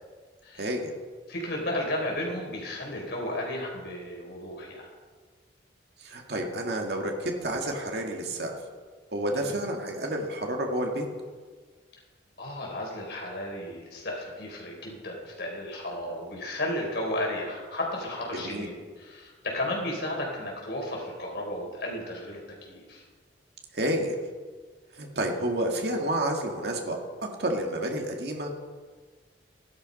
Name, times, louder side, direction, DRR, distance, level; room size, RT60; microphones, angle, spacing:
voice 1, 0.6-0.9 6.0-8.5 9.1-11.0 18.3-18.7 23.7-24.2 24.9-27.0 27.4-28.5, right 1 dB, 65° right, 1 dB, 2.0 m, -30 dB
voice 2, 1.3-4.9 9.3-9.5 12.4-23.0, left 1 dB, 65° left, -1 dB, 4.4 m, -34 dB
14.5 x 12.0 x 5.4 m, 1.5 s
head